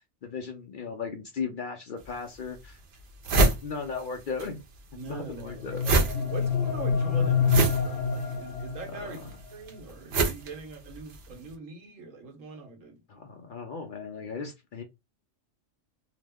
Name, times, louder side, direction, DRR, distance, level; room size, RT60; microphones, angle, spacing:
voice 1, 0.2-2.8 3.6-4.6 5.0-5.8 8.9-9.4 13.1-14.8, left 5 dB, 60° left, 0.5 m, -36 dB
sound 1, 2.0-2.1 2.6-2.7 2.9-4.5 4.7-11.3, right 2 dB, 60° right, 0.9 m, -27 dB
voice 2, 4.9-9.2 9.5-12.9, right 4 dB, 80° right, 1.3 m, -42 dB
sound 2, 5.3-9.3, left 5 dB, 35° left, 1.0 m, -27 dB
2.9 x 2.1 x 3.4 m
omnidirectional pair, 1.3 m